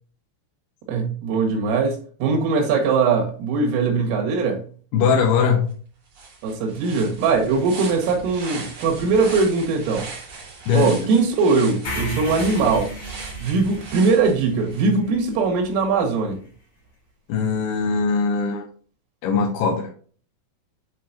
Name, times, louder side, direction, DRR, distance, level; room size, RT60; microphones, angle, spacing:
voice 1, 0.9-4.6 6.4-10.1 10.7-12.9 13.4-16.4, right 4 dB, 90° right, 4.5 m, -21 dB
voice 2, 4.9-5.7 10.7-11.1 17.3-18.7 19.2-19.9, left 5 dB, 80° left, 2.4 m, -20 dB
sound 1, 5.7-5.8 6.1-14.9, right 4 dB, 45° right, 3.6 m, -38 dB
sound 2, 11.8-16.0, left 1 dB, 45° left, 2.8 m, -35 dB
9.9 x 4.4 x 2.8 m
omnidirectional pair, 5.7 m